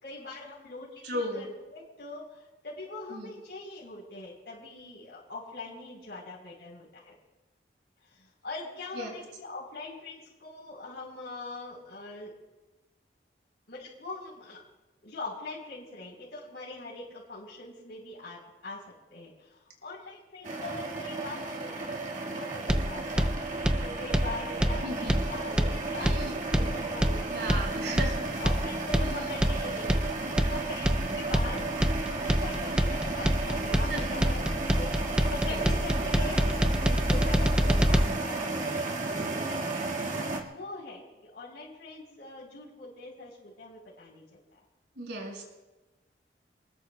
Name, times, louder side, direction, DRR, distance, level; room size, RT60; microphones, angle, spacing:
voice 1, 0.0-7.1 8.0-12.3 13.7-14.6 15.0-18.8 19.1-27.8 28.4-39.0 39.2-39.9 40.1-44.3 44.5-44.6, left 2 dB, 70° left, -5 dB, 3.8 m, -43 dB
voice 2, 1.0-1.4 3.1-3.3 9.0-9.1 24.8-25.2 26.0-26.3 27.3-28.3 29.0-29.2 33.9-34.1 35.5-35.6 45.0-45.4, right 1 dB, 85° right, 0 dB, 5.3 m, -35 dB
sound 1, 20.4-40.4, right 2 dB, 45° right, 1.7 m, -33 dB
sound 2, 22.7-38.0, equal, 5° right, 0.5 m, -26 dB
27.5 x 20.5 x 2.2 m, 1.1 s
head